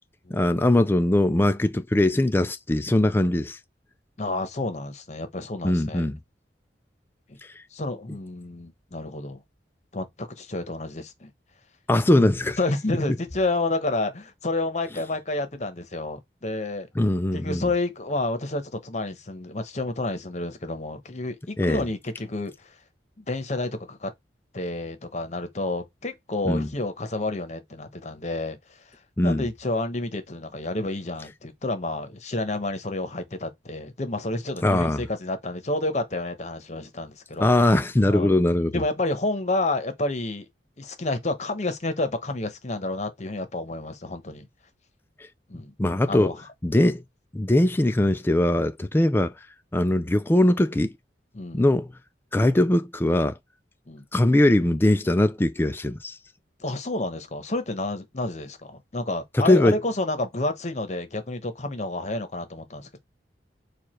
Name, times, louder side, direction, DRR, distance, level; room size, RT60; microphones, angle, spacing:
voice 1, 0.3-3.6 5.6-6.2 11.9-12.6 17.0-17.7 21.6-21.8 26.5-26.7 29.2-29.5 34.6-35.0 37.4-38.7 45.8-46.3 46.6-47.0 47.3-49.3 49.7-50.9 51.5-51.9 52.3-53.3 54.1-56.1 59.5-59.7, left 1 dB, 10° left, 0.3 m, -21 dB
voice 2, 4.2-6.1 7.3-7.4 7.7-9.4 9.9-11.3 12.6-16.9 17.3-22.8 23.2-24.1 24.5-37.5 38.1-38.4 38.7-40.5 40.8-44.5 45.5-45.7 46.1-46.5 51.3-51.6 53.9-54.0 56.6-62.9, left 2 dB, 40° left, 0.9 m, -30 dB
4.8 x 2.4 x 4.3 m
head